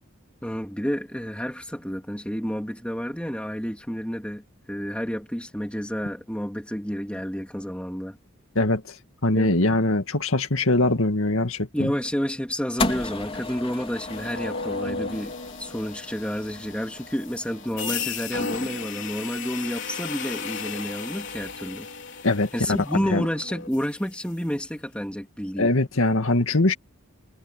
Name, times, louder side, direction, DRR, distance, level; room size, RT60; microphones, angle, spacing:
voice 1, 0.4-8.2 9.3-9.5 11.7-21.9 22.5-25.7, equal, 5° left, 3.1 m, -30 dB
voice 2, 9.2-11.9 22.2-22.8 23.1-23.2 25.6-26.7, left 2 dB, 75° left, 2.1 m, -22 dB
sound 1, 12.8-19.1, left 3 dB, 25° left, 3.9 m, -35 dB
sound 2, 14.1-24.2, left 5 dB, 60° left, 3.9 m, -35 dB
head